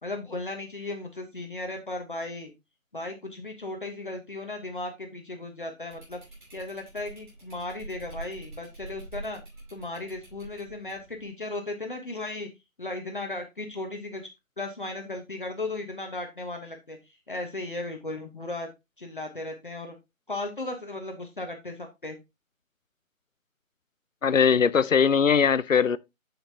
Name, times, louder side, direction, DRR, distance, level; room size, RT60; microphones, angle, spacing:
voice 1, 0.0-2.5 2.9-6.2 6.5-9.4 9.7-12.5 12.8-14.3 14.6-17.0 17.3-18.7 19.0-19.9 20.3-22.2, left 2 dB, 40° left, 1.2 m, -36 dB
sound 1, 5.9-11.3, right 2 dB, 35° right, 5.5 m, -45 dB
voice 2, 24.2-26.0, left 6 dB, 65° left, 0.6 m, -20 dB
10.0 x 5.7 x 2.8 m
figure-of-eight pair, 170°, 41 cm